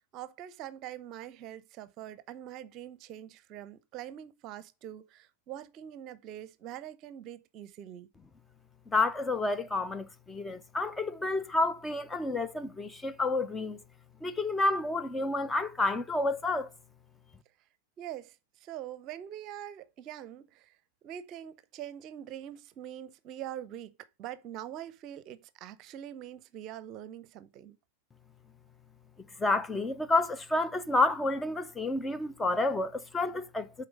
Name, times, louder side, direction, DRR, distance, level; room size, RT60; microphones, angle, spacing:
voice 1, 0.1-8.1 18.0-18.3 18.6-20.7 21.0-23.9 24.2-27.8, right 11 dB, 40° right, 0.7 m, -43 dB
voice 2, 8.9-13.8 14.2-16.7 29.4-33.9, left 2 dB, 10° left, 0.6 m, -30 dB
7.8 x 4.2 x 5.2 m
figure-of-eight pair, 90°, 0 cm